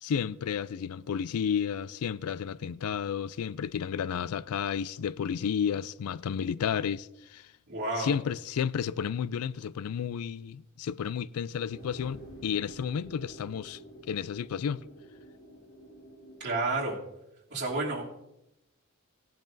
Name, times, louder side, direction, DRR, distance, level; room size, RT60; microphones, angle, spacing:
voice 1, 0.0-7.5 8.0-13.8 14.1-14.8, left 7 dB, 80° left, 0.4 m, -32 dB
voice 2, 7.7-8.1 16.4-17.0 17.5-18.2, right 2 dB, 50° right, 3.0 m, -31 dB
sound 1, 11.7-16.7, right 1 dB, 65° left, 2.5 m, -49 dB
18.0 x 10.5 x 2.7 m
head